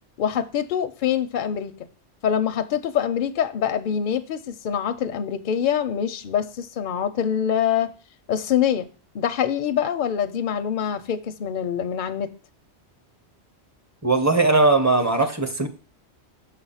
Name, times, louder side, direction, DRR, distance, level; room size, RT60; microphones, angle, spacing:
voice 1, 0.2-1.7 2.2-7.9 8.3-8.9 9.1-12.3, left 8 dB, 60° left, 0.6 m, -25 dB
voice 2, 14.0-15.7, right 3 dB, 20° right, 0.6 m, -19 dB
6.7 x 4.1 x 5.6 m
omnidirectional pair, 1.1 m